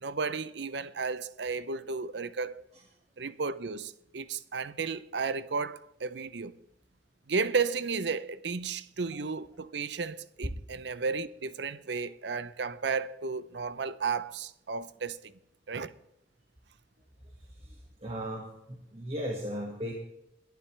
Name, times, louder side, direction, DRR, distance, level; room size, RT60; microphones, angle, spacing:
voice 1, 0.0-2.6 3.2-6.6 7.3-15.2 15.7-15.9, right 4 dB, 65° right, 0.7 m, -33 dB
voice 2, 18.0-18.5 18.9-19.9, equal, 35° right, 1.8 m, -35 dB
22.0 x 11.5 x 3.4 m
head